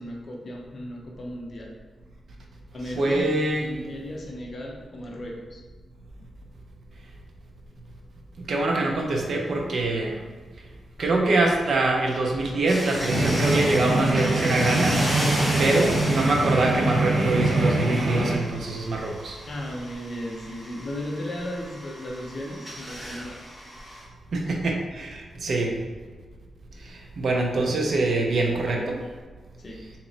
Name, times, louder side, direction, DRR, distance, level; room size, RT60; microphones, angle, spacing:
voice 1, 0.0-1.7 2.7-3.3 3.6-5.6 15.5-15.8 19.5-23.4 28.6-28.9 29.6-29.8, left 1 dB, 35° left, -1 dB, 0.5 m, -35 dB
voice 2, 3.0-3.7 8.4-10.2 11.0-15.0 15.6-19.4 24.3-25.7 26.9-29.0, right 2 dB, 50° right, 0 dB, 0.5 m, -24 dB
sound 1, 12.7-24.0, equal, 20° right, 1.1 m, -35 dB
sound 2, 13.1-18.3, right 2 dB, 85° right, 1.2 m, -24 dB
3.0 x 2.9 x 3.9 m, 1.4 s
wide cardioid pair, 170°, 0 cm